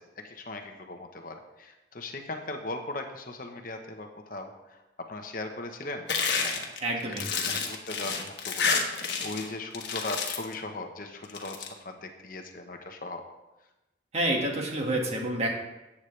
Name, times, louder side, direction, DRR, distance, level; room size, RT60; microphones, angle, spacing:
voice 1, 0.2-6.1 6.4-6.7 7.0-13.2, left 2 dB, 50° left, 4 dB, 1.0 m, -39 dB
sound 1, 6.1-9.5 9.7-10.5 11.2-11.7, left 5 dB, 65° left, 1.4 m, -29 dB
voice 2, 6.8-7.5 14.1-15.5, right 1 dB, 35° right, 0 dB, 1.8 m, -29 dB
14.5 x 8.5 x 3.3 m, 1.0 s
head